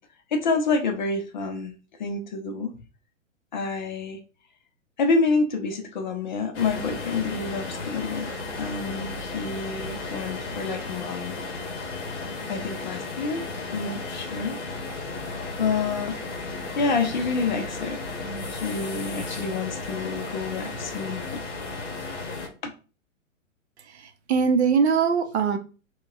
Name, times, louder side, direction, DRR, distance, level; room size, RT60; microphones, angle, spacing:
voice 1, 0.3-1.7 2.0-2.8 3.5-4.2 5.0-11.5 12.5-13.5 13.7-14.6 15.6-16.2 16.8-18.2 18.5-21.4 22.6-22.7, left 4 dB, 35° left, 6 dB, 0.5 m, -28 dB
sound 1, 6.5-22.5, left 3 dB, 60° left, 0.9 m, -34 dB
voice 2, 23.8-25.6, right 6 dB, 55° right, 7 dB, 0.6 m, -22 dB
4.5 x 2.2 x 2.4 m, 0.34 s
figure-of-eight pair, 115°, 40 cm